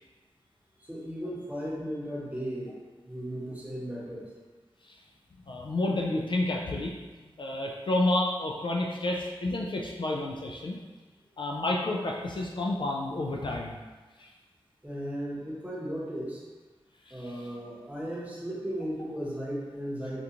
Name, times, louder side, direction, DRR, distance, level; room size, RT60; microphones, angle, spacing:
voice 1, 0.8-4.3 14.8-16.5 17.1-20.2, equal, 15° right, -6 dB, 0.9 m, -36 dB
voice 2, 5.5-6.9 7.4-10.8 11.4-13.8 14.2-14.3 17.1-17.4, left 2 dB, 50° left, -1 dB, 0.3 m, -30 dB
3.6 x 2.4 x 2.8 m, 1.3 s
wide cardioid pair, 80°, 10 cm